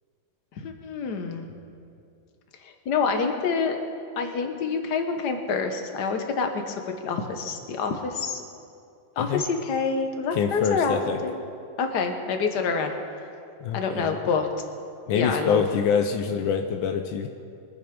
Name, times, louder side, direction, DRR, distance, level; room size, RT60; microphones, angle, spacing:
voice 1, 0.6-1.5 2.6-3.8 4.2-6.7 7.0-8.4 9.2-11.3 11.8-12.9 13.7-14.5 15.1-15.6, left 5 dB, 60° left, 5 dB, 1.7 m, -27 dB
voice 2, 10.3-11.2 13.6-14.1 15.1-17.3, left 6 dB, 85° left, 5 dB, 1.5 m, -25 dB
23.5 x 8.1 x 5.2 m, 2.4 s
omnidirectional pair, 2.1 m